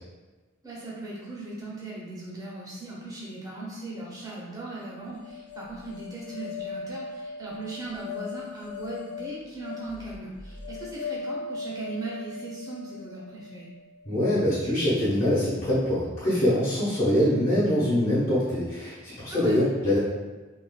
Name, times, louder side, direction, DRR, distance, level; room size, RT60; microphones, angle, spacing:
voice 1, 0.6-13.7 19.3-19.5, right 2 dB, 20° right, -5 dB, 0.6 m, -38 dB
sound 1, 5.1-14.3, left 4 dB, 85° left, 0.6 m, -39 dB
voice 2, 14.0-20.0, left 1 dB, 45° left, -12 dB, 1.0 m, -24 dB
3.2 x 2.4 x 2.2 m, 1.2 s
head